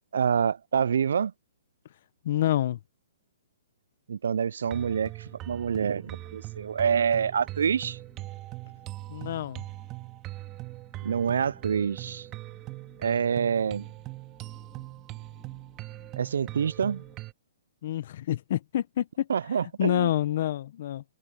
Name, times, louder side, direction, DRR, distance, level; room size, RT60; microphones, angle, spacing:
voice 1, 0.1-1.3 4.1-8.0 11.0-12.3 13.0-13.9 16.1-17.0 19.3-20.1, right 7 dB, 75° right, 0.4 m, -27 dB
voice 2, 2.2-2.8 9.1-9.6 17.8-21.0, left 12 dB, 55° left, 1.2 m, -28 dB
sound 1, 4.6-17.3, right 19 dB, 25° right, 2.2 m, -41 dB
sound 2, 5.3-17.1, left 10 dB, 20° left, 4.1 m, -60 dB
open air
hypercardioid pair, 135°, 0 cm